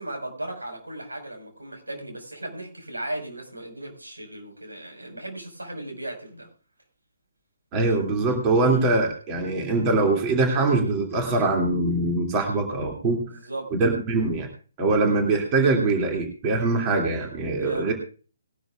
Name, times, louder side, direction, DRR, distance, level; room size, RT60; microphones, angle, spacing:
voice 1, 0.0-6.5 13.3-13.7 17.5-17.9, right 1 dB, 80° right, 3 dB, 5.5 m, -36 dB
voice 2, 7.7-13.2 13.7-14.5 14.8-17.9, right 3 dB, 25° right, 1 dB, 2.8 m, -23 dB
20.5 x 12.0 x 2.5 m, 0.38 s
figure-of-eight pair, 135°, 0 cm